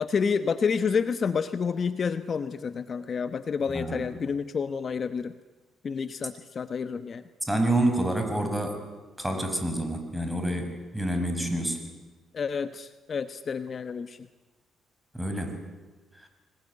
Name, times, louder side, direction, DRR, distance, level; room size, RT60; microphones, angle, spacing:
voice 1, 0.0-5.3 5.8-7.2 12.3-14.3, left 6 dB, 45° left, 11 dB, 1.0 m, -29 dB
voice 2, 7.4-8.8 9.2-11.8 15.1-15.6, right 1 dB, 5° right, 5 dB, 5.3 m, -28 dB
25.0 x 20.5 x 9.6 m, 1.3 s
cardioid pair, 90°, 0 cm